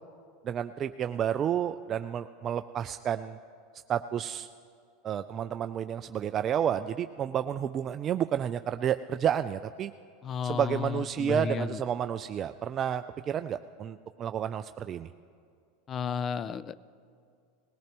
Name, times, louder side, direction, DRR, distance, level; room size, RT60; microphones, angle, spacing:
voice 1, 0.4-3.4 3.9-4.5 5.0-9.9 10.4-15.1, right 9 dB, 35° right, 9 dB, 0.3 m, -30 dB
voice 2, 10.2-11.8 15.9-16.8, left 6 dB, 30° left, 17 dB, 0.4 m, -33 dB
20.0 x 17.5 x 3.0 m, 2.3 s
supercardioid pair, 120°, 0 cm